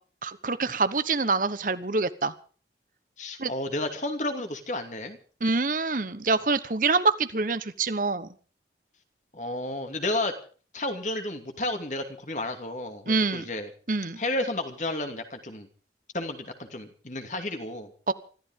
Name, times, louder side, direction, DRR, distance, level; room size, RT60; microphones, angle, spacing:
voice 1, 0.2-2.3 3.4-3.5 5.4-8.3 13.1-13.5 13.9-14.2 18.1-18.2, right 3 dB, 50° right, 13 dB, 1.0 m, -26 dB
voice 2, 3.2-5.2 9.3-10.3 10.7-13.7 14.2-15.7 16.1-17.9, left 2 dB, 45° left, 6 dB, 2.6 m, -32 dB
25.0 x 14.5 x 3.8 m, 0.40 s
head